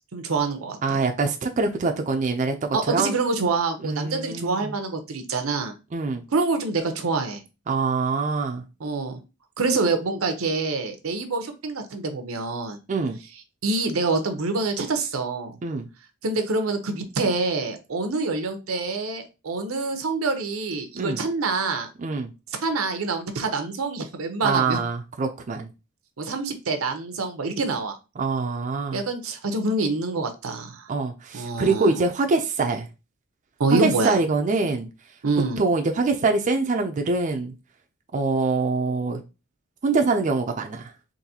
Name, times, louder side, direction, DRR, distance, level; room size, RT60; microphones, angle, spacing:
voice 1, 0.1-1.0 2.7-5.7 6.3-7.4 8.8-9.2 9.6-12.8 13.6-15.6 16.2-21.9 22.5-24.8 26.2-27.9 28.9-30.9 31.3-32.0 33.6-34.2 35.2-35.6, right 3 dB, 85° right, 0.7 m, -26 dB
voice 2, 0.8-3.2 3.8-4.7 5.9-6.2 7.7-8.6 12.9-13.2 15.6-15.9 20.9-21.2 22.0-22.3 24.4-25.7 28.2-29.0 30.9-32.9 33.8-34.9 35.6-37.5 38.1-39.2 39.8-40.9, right 3 dB, 35° right, 0.4 m, -24 dB
3.9 x 2.6 x 2.7 m
head